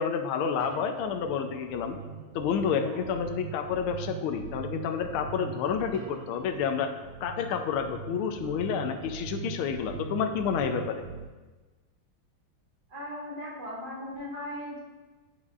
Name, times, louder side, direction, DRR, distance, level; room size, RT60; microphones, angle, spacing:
voice 1, 0.0-2.0 2.3-6.9 7.2-11.0, left 7 dB, 80° left, 6 dB, 1.4 m, -29 dB
sound 1, 0.6-11.3, right 6 dB, 85° right, 1.5 m, -41 dB
voice 2, 12.9-14.8, left 1 dB, 50° right, -5 dB, 2.2 m, -38 dB
9.6 x 5.6 x 2.4 m, 1.3 s
omnidirectional pair, 2.3 m